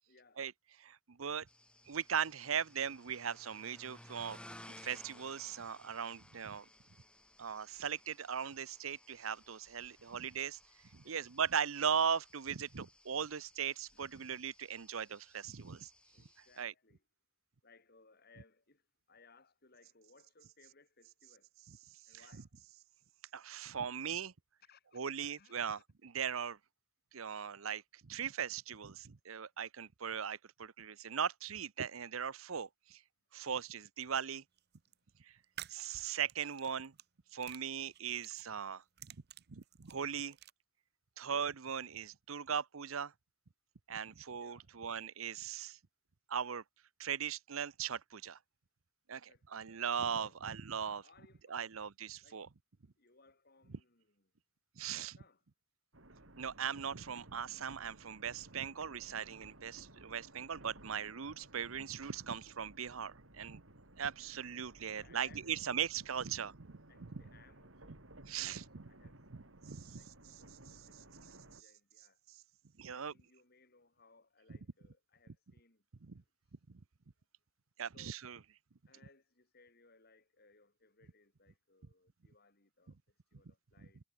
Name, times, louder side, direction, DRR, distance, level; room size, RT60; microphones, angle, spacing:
voice 1, 0.1-0.4 11.0-11.5 13.9-14.4 16.1-17.0 17.6-21.5 22.1-22.5 24.6-25.8 34.9-35.0 44.4-44.7 49.3-49.8 50.2-50.4 51.0-51.7 52.2-52.5 53.0-54.3 54.8-55.4 64.9-66.5 66.9-72.2 72.9-75.9 76.1-76.3 77.9-78.2 78.9-84.0, left 4 dB, 50° left, 3.6 m, -66 dB
voice 2, 0.8-1.5 1.9-4.4 4.7-6.6 7.4-10.6 10.9-15.9 16.6-16.7 22.1-22.2 23.3-24.3 24.9-26.6 27.1-33.0 33.3-34.4 35.2-35.3 35.7-36.9 37.3-39.2 39.5-40.4 41.2-43.1 43.9-45.8 46.3-46.6 47.0-48.4 49.1-51.0 51.5-52.5 54.8-55.2 56.4-63.6 64.0-66.7 67.0-67.2 68.3-68.8 69.3-70.0 70.3-70.4 72.8-73.1 74.5-74.6 76.0-76.2 76.7-76.8 77.8-78.4 83.8-83.9, right 7 dB, 85° right, 0.8 m, -39 dB
sound 1, 1.5-16.6, left 1 dB, 5° left, 5.1 m, -59 dB
sound 2, 34.6-34.9 35.4-37.1 37.4-38.5 38.8-40.5, right 11 dB, 50° right, 1.0 m, -52 dB
sound 3, 55.9-71.6, right 1 dB, 70° right, 4.5 m, -58 dB
head